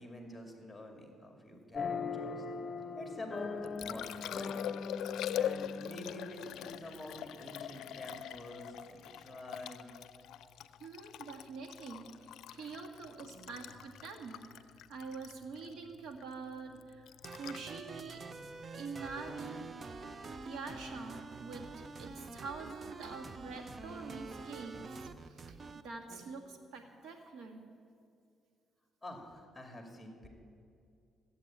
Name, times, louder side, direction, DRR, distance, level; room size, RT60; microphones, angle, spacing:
voice 1, 0.0-2.5 3.0-4.6 5.3-9.9 12.6-12.8 13.3-13.5 29.0-30.3, left 1 dB, 5° left, 3 dB, 2.4 m, -48 dB
sound 1, 1.7-7.2, left 4 dB, 40° left, 0.8 m, -41 dB
Liquid, 3.4-19.5 22.3-22.4, left 11 dB, 80° left, 0.4 m, -43 dB
voice 2, 10.8-19.7 20.4-25.6 25.8-27.6, right 4 dB, 70° right, 3 dB, 1.8 m, -46 dB
sound 2, 17.2-25.8, right 3 dB, 40° right, 0.6 m, -46 dB
14.0 x 8.4 x 8.7 m, 2.4 s
cardioid pair, 90°, 0 cm